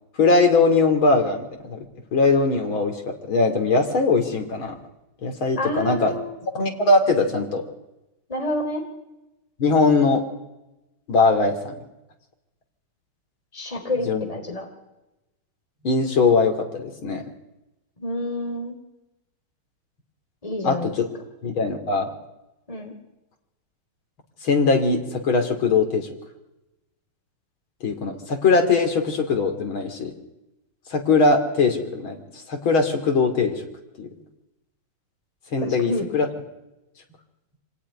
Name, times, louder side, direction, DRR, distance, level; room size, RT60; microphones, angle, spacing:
voice 1, 0.2-1.9 2.1-4.8 5.2-6.1 6.4-7.6 9.6-10.2 11.1-11.7 14.1-14.3 15.8-17.2 20.6-21.0 21.4-22.1 24.4-26.1 27.8-30.1 30.9-32.2 32.5-33.6 34.0-34.1 35.5-36.3, left 4 dB, 70° left, 4 dB, 3.7 m, -21 dB
voice 2, 5.6-6.3 8.3-8.8 13.5-14.7 18.0-18.8 20.4-20.9 22.7-22.9 35.6-36.1, left 1 dB, 15° left, 4 dB, 3.8 m, -28 dB
26.0 x 17.0 x 9.8 m, 0.97 s
omnidirectional pair, 2.3 m